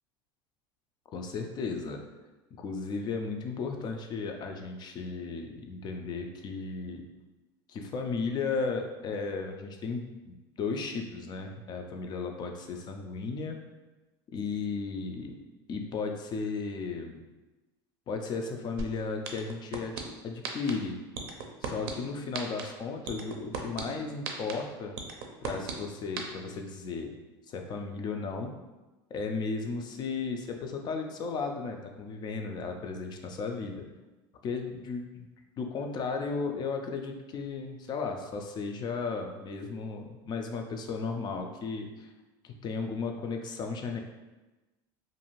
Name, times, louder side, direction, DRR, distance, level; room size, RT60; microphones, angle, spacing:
voice 1, 1.1-2.0 2.6-7.0 7.7-13.6 14.3-15.4 15.7-17.2 18.1-21.0 21.6-25.0 25.4-27.1 27.5-28.5 29.1-33.8 34.4-35.3 35.6-42.1 42.4-44.0, left 4 dB, 35° left, 4 dB, 0.4 m, -35 dB
sound 1, 18.8-18.9 19.2-20.0 20.4-20.7 21.1-21.9 22.3-22.6 23.1-23.8 24.2-24.5 25.0-25.7 26.2-26.3, right 7 dB, 80° right, 0.5 m, -34 dB
2.6 x 2.3 x 3.0 m, 1.1 s
supercardioid pair, 110°, 12 cm